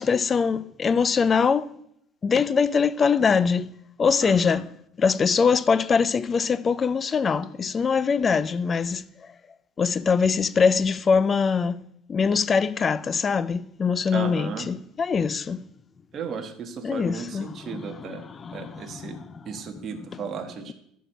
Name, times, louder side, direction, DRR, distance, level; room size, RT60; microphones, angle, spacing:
voice 1, 0.0-1.7 2.2-3.7 4.0-4.7 5.0-9.0 9.8-11.8 12.1-15.6 16.8-19.2, left 5 dB, 25° left, 0.4 m, -23 dB
voice 2, 4.2-4.6 14.1-14.7 16.1-18.2 18.5-20.7, right 6 dB, 35° right, 1.5 m, -35 dB
13.5 x 4.7 x 6.6 m
cardioid pair, 145°, 0 cm